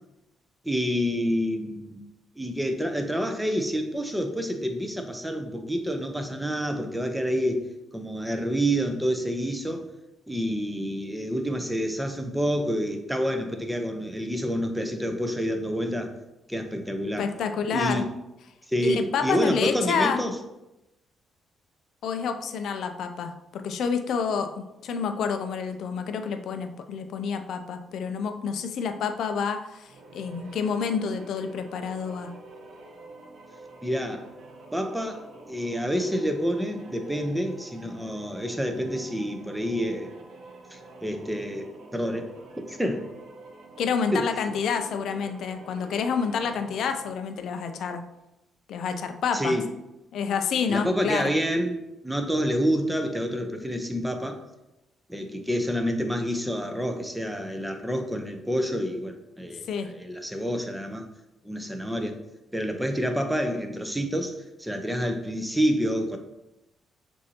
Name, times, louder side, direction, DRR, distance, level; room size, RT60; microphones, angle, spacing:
voice 1, 0.6-2.0 2.4-9.9 10.3-16.1 16.5-17.3 17.7-18.1 18.7-20.4 33.8-34.3 34.7-40.1 40.7-43.1 44.1-44.3 49.3-49.7 50.7-51.8 52.0-54.4 55.1-61.1 61.4-62.2 62.5-66.2, equal, 5° right, 5 dB, 0.6 m, -28 dB
voice 2, 17.2-18.0 18.8-20.2 22.0-32.3 43.8-48.0 48.7-49.6 50.1-51.3 59.7-59.9, left 6 dB, 70° left, 7 dB, 0.4 m, -28 dB
sound 1, 29.8-47.3, right 2 dB, 70° right, 0.7 m, -47 dB
6.5 x 2.6 x 2.8 m, 0.94 s
cardioid pair, 90°, 0 cm